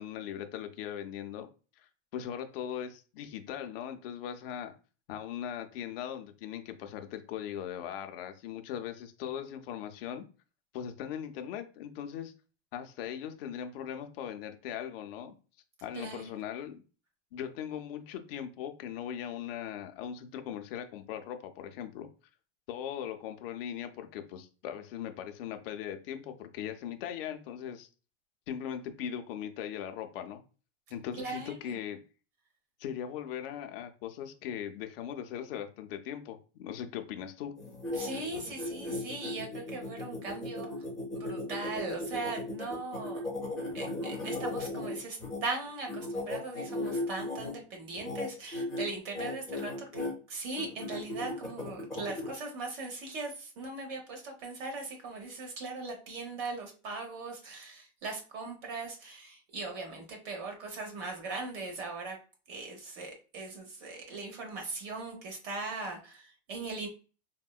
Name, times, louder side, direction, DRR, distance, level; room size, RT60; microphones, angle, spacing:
voice 1, 0.0-1.5 2.1-4.7 5.1-10.2 10.7-12.3 12.7-15.3 15.8-16.8 17.3-22.1 22.7-27.9 28.5-30.4 30.9-32.0 32.8-37.5, left 9 dB, 50° left, 7 dB, 0.5 m, -39 dB
voice 2, 15.9-16.3 31.2-31.8 37.9-40.7 41.1-43.2 43.7-62.2 62.5-66.9, right 3 dB, 45° right, 2 dB, 0.8 m, -39 dB
sound 1, 37.6-45.4 45.9-47.5 48.0-48.3 48.5-48.8 49.1-50.1 50.6-52.3, left 2 dB, ahead, 0.5 m, -36 dB
3.6 x 2.1 x 2.3 m, 0.35 s
supercardioid pair, 165°, 37 cm